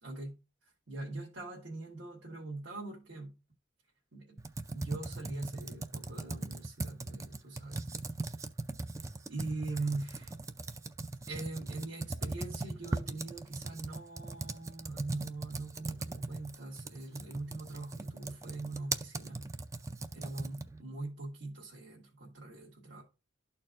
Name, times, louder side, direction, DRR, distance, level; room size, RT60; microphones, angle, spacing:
voice 1, 0.0-0.4 0.9-3.3 4.1-4.4 4.7-7.9 9.3-10.3 11.3-19.5 20.1-23.0, right 3 dB, 80° right, 1.7 m, -41 dB
Computer keyboard, 4.4-20.8, right 3 dB, 15° right, 0.3 m, -39 dB
12.5 x 4.4 x 2.5 m
head